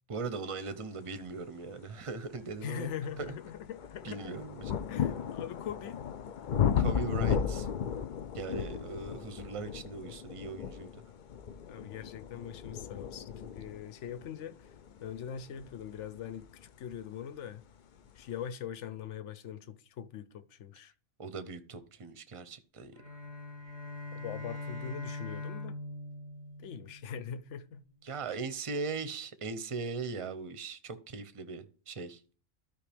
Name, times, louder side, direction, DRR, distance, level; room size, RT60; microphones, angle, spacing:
voice 1, 0.1-2.9 3.2-3.3 4.0-4.7 6.8-7.7 8.3-11.0 21.2-22.9 28.0-32.2, right 4 dB, 35° right, 0.7 m, -39 dB
sound 1, 1.7-1.8 2.4-17.1 18.0-18.1, left 8 dB, 55° left, 0.6 m, -35 dB
voice 2, 2.6-4.3 4.9-6.0 11.7-14.7 15.0-16.5 16.8-17.6 18.2-20.9 24.1-25.7 26.6-27.9, left 8 dB, 80° left, 1.0 m, -42 dB
sound 2, 22.9-27.4, left 2 dB, 40° left, 1.8 m, -42 dB
13.0 x 5.0 x 3.4 m
omnidirectional pair, 1.2 m